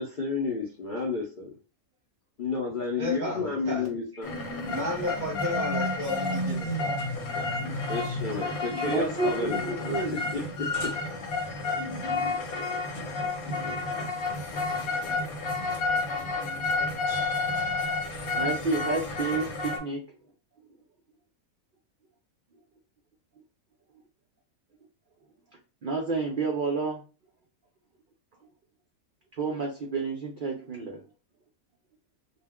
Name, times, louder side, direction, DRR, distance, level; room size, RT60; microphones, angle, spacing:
voice 1, 0.0-1.5 2.4-4.3 7.9-10.9, left 4 dB, 55° left, 0.6 m, -31 dB
voice 2, 3.0-3.9 4.7-6.9, left 1 dB, 40° right, 0.8 m, -32 dB
sound 1, 4.2-19.8, left 3 dB, 80° left, 1.1 m, -30 dB
voice 3, 8.9-10.1 18.3-20.0 25.8-27.0 29.4-31.0, right 4 dB, 65° right, 0.5 m, -30 dB
2.4 x 2.0 x 3.4 m
omnidirectional pair, 1.5 m